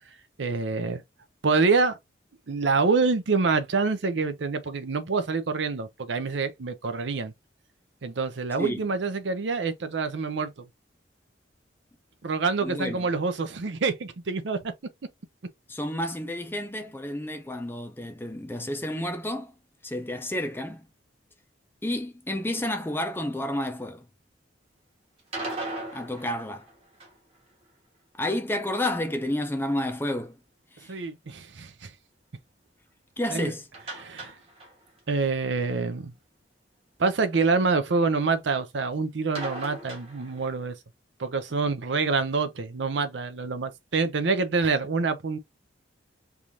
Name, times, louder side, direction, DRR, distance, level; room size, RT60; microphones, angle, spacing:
voice 1, 0.4-1.0 1.4-2.0 2.5-7.3 8.0-10.5 12.2-14.7 30.9-31.9 33.3-33.5 34.0-34.3 35.1-36.1 37.0-40.8 41.2-45.4, right 4 dB, 70° right, 0.6 m, -26 dB
voice 2, 12.6-13.1 15.7-19.5 19.8-20.9 21.8-24.1 25.9-26.7 28.1-30.4 30.7-30.9 33.2-33.7, left 1 dB, 10° left, 0.5 m, -30 dB
sound 1, 25.2-27.4 33.7-35.0 35.3-35.4 35.7-35.8 39.3-40.7, right 2 dB, 30° right, 1.3 m, -38 dB
3.5 x 2.5 x 2.8 m
head